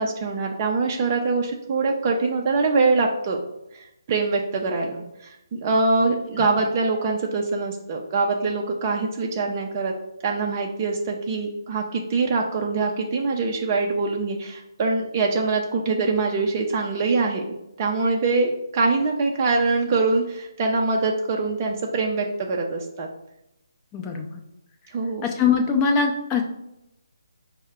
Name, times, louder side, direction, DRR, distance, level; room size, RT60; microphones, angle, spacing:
voice 1, 0.0-3.4 3.7-9.9 10.2-17.4 17.8-23.1 24.9-25.2, right 3 dB, 30° right, 0 dB, 0.5 m, -24 dB
voice 2, 23.9-24.3 25.2-26.4, left 5 dB, 15° left, 3 dB, 0.6 m, -22 dB
5.4 x 2.1 x 3.6 m, 0.87 s
figure-of-eight pair, 150°, 2 cm